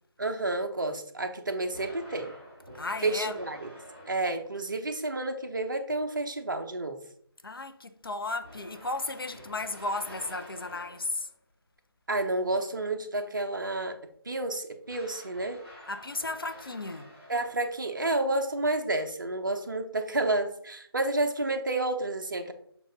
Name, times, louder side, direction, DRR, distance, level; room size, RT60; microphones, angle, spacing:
voice 1, 0.2-2.3 3.0-3.7 4.1-7.0 12.1-14.0 14.3-15.6 17.3-22.5, right 2 dB, 50° right, 0.8 m, -30 dB
sound 1, 1.7-4.7 8.4-11.3 14.9-18.0, equal, 5° left, 1.5 m, -49 dB
voice 2, 2.7-3.4 7.4-11.3 15.9-17.1, left 2 dB, 60° left, 0.8 m, -34 dB
7.3 x 2.5 x 5.2 m
figure-of-eight pair, 160°, 14 cm